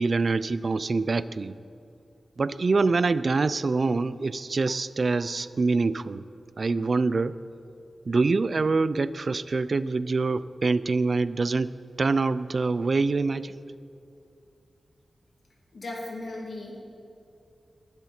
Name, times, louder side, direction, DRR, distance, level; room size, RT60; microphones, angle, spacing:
voice 1, 0.0-1.5 2.4-6.2 6.6-7.4 8.1-11.7 12.0-13.5, right 3 dB, 45° right, 16 dB, 0.4 m, -25 dB
voice 2, 15.7-16.8, left 2 dB, 60° left, -2 dB, 2.8 m, -36 dB
19.5 x 12.0 x 4.4 m, 2.6 s
wide cardioid pair, 135°, 0 cm